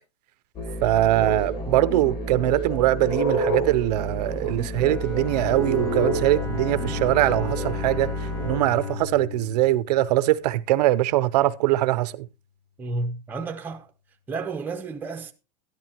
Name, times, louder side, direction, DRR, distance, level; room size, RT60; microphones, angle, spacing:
sound 1, 0.6-8.6, right 1 dB, 25° left, 1.6 m, -29 dB
voice 1, 0.8-8.1 8.4-12.3, right 15 dB, 75° right, 0.6 m, -22 dB
Bowed string instrument, 4.7-10.6, left 5 dB, 75° left, 3.0 m, -33 dB
voice 2, 12.8-13.9 14.3-15.3, right 3 dB, 10° right, 0.6 m, -31 dB
13.0 x 11.0 x 2.9 m
supercardioid pair, 170°, 21 cm